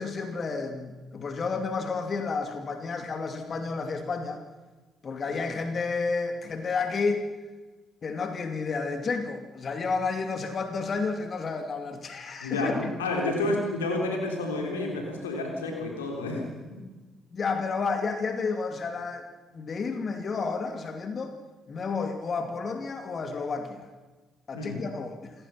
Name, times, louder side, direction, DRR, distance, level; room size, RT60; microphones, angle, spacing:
voice 1, 0.0-4.4 5.0-7.3 8.0-12.9 16.3-16.5 17.3-19.2 19.5-21.3 21.7-23.9 24.5-25.3, left 4 dB, 45° left, 6 dB, 2.6 m, -31 dB
voice 2, 12.4-16.5 16.7-16.8 24.5-24.8, left 2 dB, 85° left, 1 dB, 3.6 m, -30 dB
27.5 x 16.0 x 5.9 m, 1.2 s
figure-of-eight pair, 45°, 0 cm